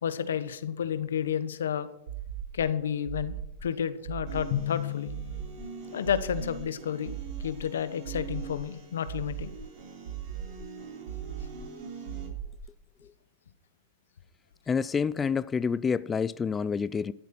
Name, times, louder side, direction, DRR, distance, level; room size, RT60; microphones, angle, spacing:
voice 1, 0.0-1.9 2.5-5.1 5.9-9.5, left 8 dB, 85° left, 1.1 m, -31 dB
sound 1, 2.1-2.7 3.0-3.7 4.0-4.7 5.1-5.7 6.0-6.7 7.0-7.7 8.0-8.7 9.1-9.7 10.1-10.7 11.1-11.7 12.1-12.7, right 9 dB, 80° right, 2.2 m, -39 dB
sound 2, 4.3-12.3, right 5 dB, 50° right, 4.2 m, -45 dB
Drum, 4.5-6.2, left 12 dB, 60° left, 1.6 m, -35 dB
voice 2, 14.7-17.1, left 6 dB, 20° left, 0.3 m, -28 dB
13.0 x 8.3 x 5.9 m
hypercardioid pair, 125°, 0 cm